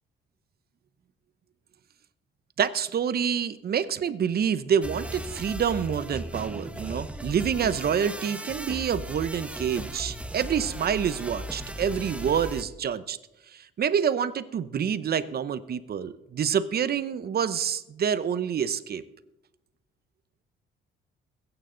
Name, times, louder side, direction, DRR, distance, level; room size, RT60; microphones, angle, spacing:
voice 1, 2.6-13.2 13.5-19.0, right 8 dB, 50° right, 14 dB, 0.8 m, -27 dB
sound 1, 4.8-12.6, right 1 dB, 5° right, 1.0 m, -37 dB
22.0 x 9.1 x 3.9 m, 0.91 s
cardioid pair, 90°, 20 cm